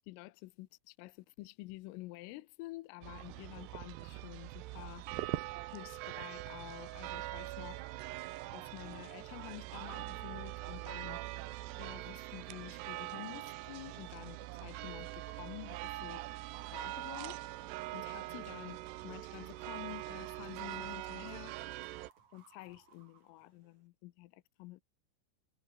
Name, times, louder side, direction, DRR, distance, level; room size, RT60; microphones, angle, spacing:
voice 1, 0.1-5.1 5.7-7.9 8.5-11.2 11.8-16.3 16.7-17.4 17.9-21.6 22.3-24.8, left 19 dB, 85° left, 3.5 m, -49 dB
sound 1, 3.0-22.1, right 17 dB, 80° right, 2.5 m, -43 dB
sound 2, 17.9-23.9, right 7 dB, 40° right, 3.8 m, -65 dB
omnidirectional pair, 5.8 m